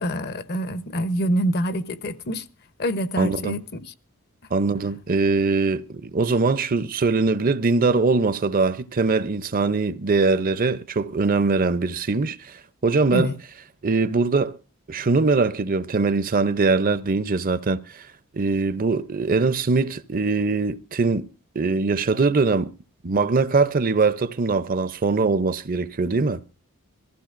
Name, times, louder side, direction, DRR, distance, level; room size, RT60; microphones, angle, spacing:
voice 1, 0.0-2.5 2.8-3.9 13.1-13.4, equal, 50° left, 0.9 m, -26 dB
voice 2, 3.2-3.6 4.5-13.3 13.8-14.6 14.9-18.1 18.3-21.3 21.5-22.7 23.0-26.4, right 4 dB, 40° right, 0.6 m, -22 dB
22.0 x 15.0 x 2.5 m
head